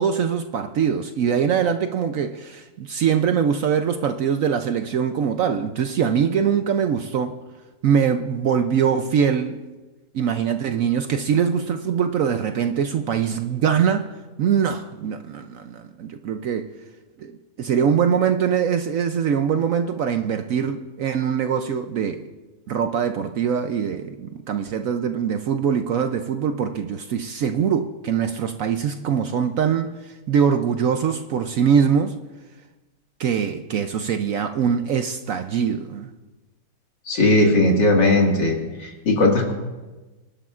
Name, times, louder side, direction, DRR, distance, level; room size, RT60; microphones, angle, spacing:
voice 1, 0.0-7.4 7.8-9.6 10.1-14.1 14.4-16.7 17.2-22.2 22.7-32.2 33.2-36.1, right 7 dB, 65° right, 0.8 m, -23 dB
voice 2, 37.1-39.5, left 2 dB, 85° left, 2.6 m, -18 dB
25.0 x 11.5 x 2.4 m
omnidirectional pair, 1.9 m